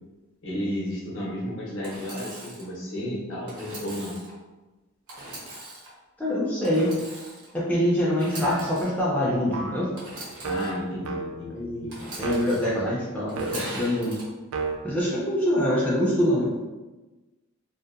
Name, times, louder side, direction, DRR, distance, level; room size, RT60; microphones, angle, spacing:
voice 1, 0.4-4.2 10.4-12.7, equal, 60° left, -4 dB, 0.7 m, -33 dB
Engine / Sawing, 1.8-2.7 3.5-4.3 5.1-5.9 6.6-7.5 8.1-8.9 10.0-10.7 11.9-12.7 13.3-14.2, right 1 dB, 90° right, 0.8 m, -40 dB
voice 2, 6.2-6.9 7.5-9.9 11.5-14.2 14.8-16.7, equal, 5° left, -7 dB, 0.3 m, -25 dB
sound 1, 8.4-8.9 9.5-9.9 10.4-11.6 12.2-12.7 13.4-13.8 14.5-14.8, right 4 dB, 70° right, 0.3 m, -33 dB
2.6 x 2.1 x 2.4 m, 1.1 s
head